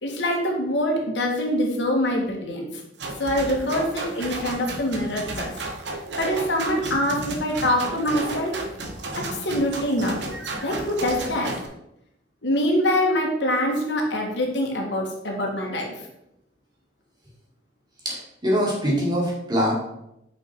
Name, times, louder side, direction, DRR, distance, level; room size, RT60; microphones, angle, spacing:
voice 1, 0.0-2.6 3.2-5.5 6.2-8.5 9.4-10.2 10.6-11.5 12.4-15.9, left 1 dB, 80° left, 0 dB, 1.7 m, -24 dB
sound 1, 3.0-11.7, right 2 dB, 75° right, 1.1 m, -33 dB
voice 2, 18.0-19.7, equal, 25° right, -4 dB, 2.4 m, -23 dB
6.1 x 5.4 x 4.6 m, 0.82 s
head